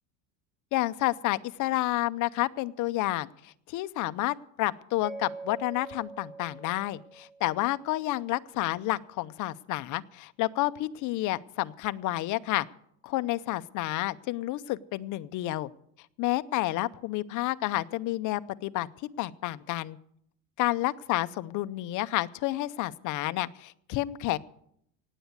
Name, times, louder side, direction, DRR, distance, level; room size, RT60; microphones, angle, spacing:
voice 1, 0.7-12.7 13.0-15.7 16.2-18.9 19.2-20.0 20.6-24.4, left 17 dB, 45° left, 13 dB, 0.6 m, -30 dB
Mallet percussion, 5.0-8.0, right 3 dB, 20° right, 1.2 m, -44 dB
18.0 x 8.2 x 8.0 m, 0.72 s
cardioid pair, 150°, 43 cm